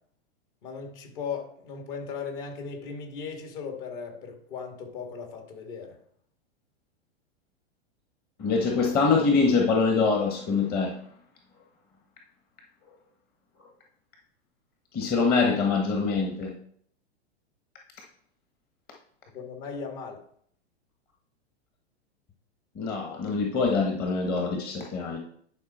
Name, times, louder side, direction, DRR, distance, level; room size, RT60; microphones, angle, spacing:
voice 1, 0.6-6.0 15.0-15.1 19.3-20.2, left 5 dB, 55° left, 2 dB, 2.3 m, -37 dB
voice 2, 8.4-10.9 14.9-16.5 22.8-25.2, left 4 dB, 30° left, 1 dB, 1.4 m, -24 dB
10.5 x 4.8 x 4.3 m, 0.63 s
hypercardioid pair, 110°, 33 cm